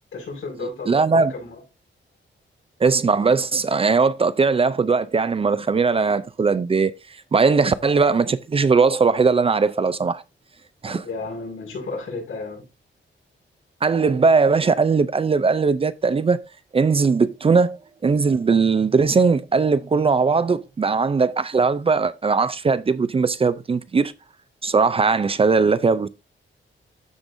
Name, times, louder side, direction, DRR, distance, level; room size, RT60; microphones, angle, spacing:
voice 1, 0.1-1.6 10.8-12.7, left 3 dB, 90° left, 5.4 m, -33 dB
voice 2, 0.9-1.3 2.8-6.9 7.3-10.2 10.8-11.1 13.8-16.4 16.7-24.1 24.6-26.1, right 4 dB, 30° right, 0.4 m, -19 dB
13.5 x 5.2 x 2.6 m
wide cardioid pair, 155°, 20 cm